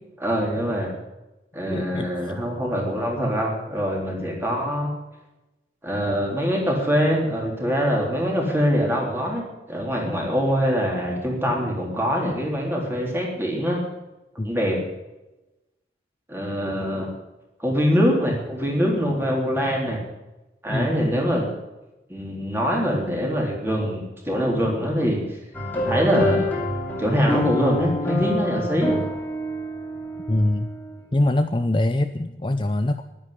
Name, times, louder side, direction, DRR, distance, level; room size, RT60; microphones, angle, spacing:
voice 1, 0.2-0.9 1.5-4.9 5.8-13.8 14.4-14.8 16.3-17.1 17.6-20.0 20.6-21.5 22.1-25.2 25.7-26.5 27.0-29.0, equal, 15° right, -1 dB, 3.7 m, -23 dB
voice 2, 1.7-2.3 14.4-14.5 20.7-21.0 30.3-30.7 31.1-33.0, left 1 dB, 25° left, 8 dB, 0.5 m, -23 dB
sound 1, 25.5-31.1, left 1 dB, 10° left, 2.6 m, -27 dB
11.5 x 10.5 x 9.7 m, 1.0 s
head